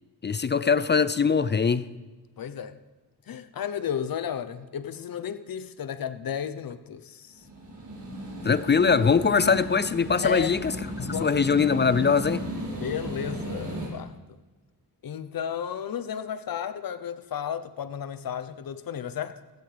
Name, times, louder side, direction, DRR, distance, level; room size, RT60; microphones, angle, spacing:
voice 1, 0.2-1.9 8.4-10.7 11.0-12.5, left 5 dB, 30° left, 15 dB, 0.4 m, -22 dB
voice 2, 2.4-2.8 3.3-7.5 10.2-10.6 11.1-11.6 12.7-14.2 15.0-19.3, left 8 dB, 60° left, 12 dB, 0.9 m, -33 dB
sound 1, 7.3-13.9, equal, 50° right, 4.8 m, -35 dB
16.5 x 15.5 x 3.4 m, 1.2 s
wide cardioid pair, 110°, 39 cm